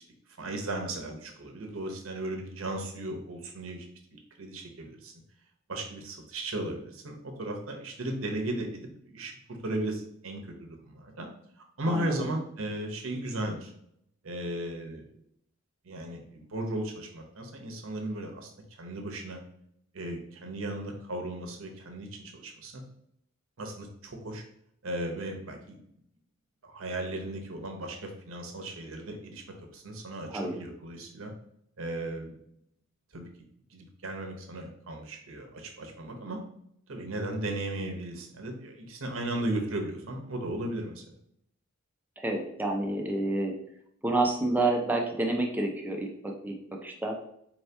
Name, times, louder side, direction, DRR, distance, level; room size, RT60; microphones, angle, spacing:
voice 1, 0.4-5.1 5.7-11.3 11.8-13.7 14.2-15.1 15.8-18.5 18.8-19.4 19.9-22.1 22.3-22.8 23.6-24.4 24.8-25.8 26.6-29.4 29.7-31.3 31.8-32.4 33.1-33.3 33.7-36.4 36.9-41.0, right 1 dB, 70° right, 3 dB, 0.8 m, -36 dB
voice 2, 11.9-12.3 30.3-30.5 42.2-43.5 44.0-47.2, right 2 dB, 10° right, 1 dB, 0.5 m, -29 dB
4.4 x 2.8 x 3.3 m, 0.71 s
head